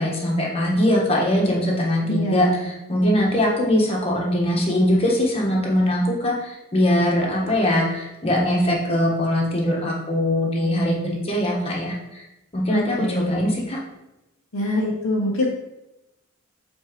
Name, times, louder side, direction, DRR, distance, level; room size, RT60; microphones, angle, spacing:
voice 1, 0.0-2.5 2.9-12.2 12.5-13.8, left 1 dB, 25° left, -3 dB, 1.4 m, -21 dB
voice 2, 2.0-2.7 12.7-13.5 14.5-15.5, left 1 dB, 75° left, -4 dB, 0.9 m, -25 dB
7.5 x 4.4 x 3.1 m, 0.95 s
head